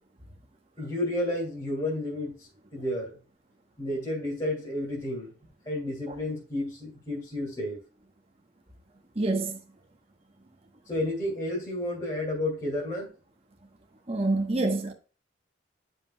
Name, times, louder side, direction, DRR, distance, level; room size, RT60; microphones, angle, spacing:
voice 1, 0.8-2.4 2.7-3.2 3.8-5.3 5.7-7.8 10.9-13.1, left 1 dB, 25° left, 2.4 m, -31 dB
voice 2, 9.2-9.6 14.1-14.9, right 2 dB, 30° right, 0.9 m, -26 dB
11.0 x 5.4 x 2.2 m
head